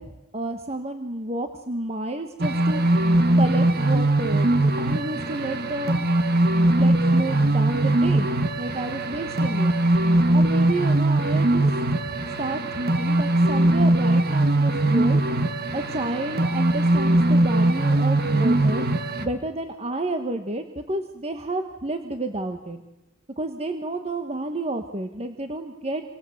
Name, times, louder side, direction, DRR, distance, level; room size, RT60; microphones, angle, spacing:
voice 1, 0.0-2.8 3.1-4.5 4.8-6.0 6.7-9.7 10.3-11.7 12.1-15.2 15.7-18.8 19.2-22.8 23.4-26.0, right 2 dB, 30° right, 6 dB, 1.5 m, -30 dB
sound 1, 2.4-19.3, right 1 dB, 50° right, 1.9 m, -21 dB
28.0 x 26.0 x 8.1 m, 1.0 s
head